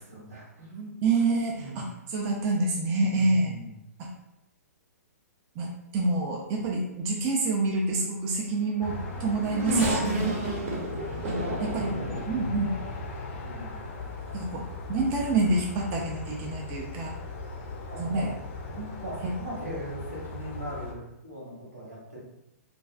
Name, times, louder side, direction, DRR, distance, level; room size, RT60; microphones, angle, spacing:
voice 1, 0.0-0.9 1.5-1.8 3.0-3.7 10.5-12.6 13.2-14.6 17.9-18.3 18.7-22.2, right 1 dB, 90° right, -6 dB, 1.3 m, -40 dB
voice 2, 1.0-3.5 4.0-4.1 5.6-5.7 5.9-10.3 11.2-12.7 14.3-14.6 14.9-17.1 18.0-18.3 19.2-19.3, right 2 dB, 30° right, -1 dB, 0.4 m, -27 dB
Race car auto racing / Accelerating revving vroom, 8.6-13.2 13.9-14.0 15.1-15.3, right 2 dB, 50° right, 0.8 m, -31 dB
sound 1, 8.8-20.9, left 3 dB, 45° left, 0.4 m, -38 dB
2.4 x 2.3 x 2.2 m, 0.87 s
figure-of-eight pair, 120°, 9 cm